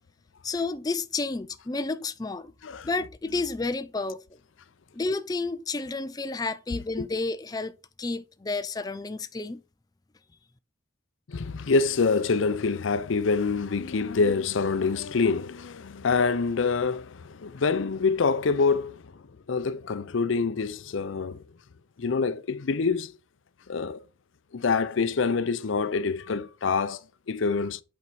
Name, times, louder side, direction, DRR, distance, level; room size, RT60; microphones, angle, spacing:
voice 1, 0.4-2.5 2.8-4.2 4.9-7.7 8.0-9.6, left 3 dB, 20° left, 0.4 m, -31 dB
voice 2, 11.3-19.2 19.5-21.4 22.0-23.2 23.7-24.0 24.5-27.8, left 4 dB, 85° left, 0.5 m, -26 dB
8.4 x 4.6 x 4.6 m
head